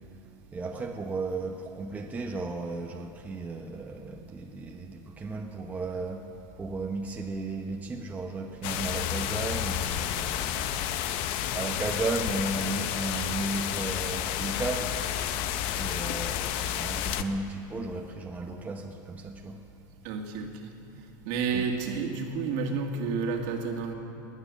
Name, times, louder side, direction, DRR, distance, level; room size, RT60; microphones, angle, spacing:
voice 1, 0.5-6.3 6.6-10.6 11.2-15.0 15.7-19.6 21.5-21.6, right 3 dB, 15° right, 2 dB, 1.0 m, -35 dB
sound 1, 8.6-17.2, left 10 dB, 55° left, 0.8 m, -31 dB
voice 2, 20.0-20.7 21.2-23.9, right 5 dB, 60° right, 2 dB, 2.2 m, -30 dB
19.5 x 9.7 x 7.3 m, 2.7 s
supercardioid pair, 130°, 10 cm